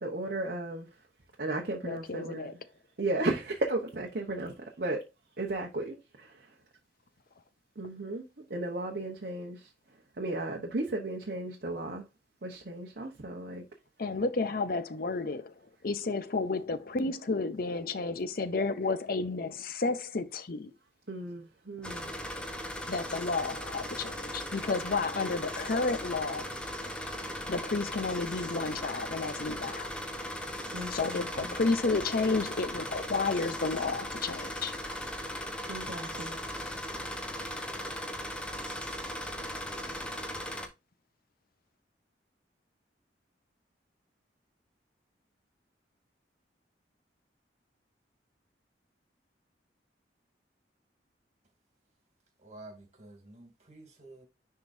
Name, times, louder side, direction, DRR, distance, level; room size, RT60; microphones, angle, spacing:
voice 1, 0.0-0.9 1.4-2.5 3.0-5.0 5.4-6.5 7.8-8.2 8.5-9.7 10.2-12.1 12.4-13.6 21.1-22.2 30.7-31.6 35.7-36.4, right 2 dB, 55° right, 0.9 m, -35 dB
voice 2, 1.8-2.5 14.0-15.5 15.8-20.7 22.9-26.5 27.5-29.9 30.9-34.7, left 3 dB, 50° left, 0.6 m, -31 dB
sound 1, 21.8-40.7, equal, 5° left, 1.0 m, -38 dB
voice 3, 52.4-54.2, right 2 dB, 40° right, 2.5 m, -50 dB
10.5 x 3.7 x 2.6 m
head